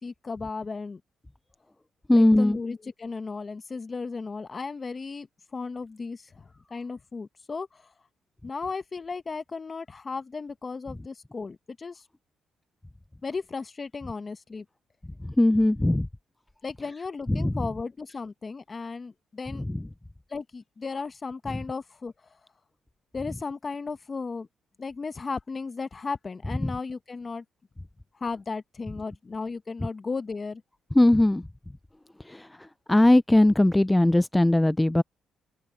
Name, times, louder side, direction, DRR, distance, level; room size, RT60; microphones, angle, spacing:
voice 1, 0.0-1.0 2.1-5.3 5.5-7.8 8.4-12.0 13.2-14.6 16.6-19.6 20.3-22.1 23.1-24.5 24.8-27.4 28.2-30.6, left 4 dB, 30° left, 1.2 m, -35 dB
voice 2, 2.1-2.6 15.4-16.1 17.3-17.5 31.0-31.4 32.3-32.5 32.9-35.0, left 1 dB, 10° left, 0.3 m, -19 dB
open air
cardioid pair, 90°, 0 cm